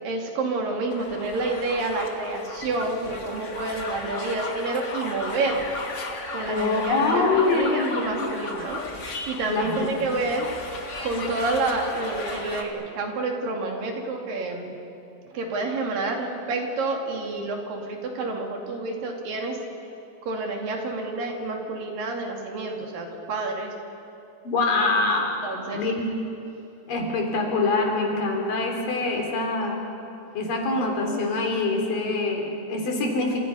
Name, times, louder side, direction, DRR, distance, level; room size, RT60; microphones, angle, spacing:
voice 1, 0.0-5.8 6.3-8.8 9.3-10.5 11.0-14.7 15.3-19.6 20.3-23.7 24.7-24.8 25.4-25.8, right 3 dB, 70° right, 2 dB, 4.1 m, -29 dB
sound 1, 0.9-12.6, left 3 dB, 40° left, 1.1 m, -35 dB
voice 2, 6.5-8.0 9.5-9.9 24.4-25.9 26.9-29.8 30.3-33.4, left 3 dB, 70° left, 1 dB, 5.0 m, -24 dB
28.5 x 27.0 x 5.6 m, 2.8 s
omnidirectional pair, 4.1 m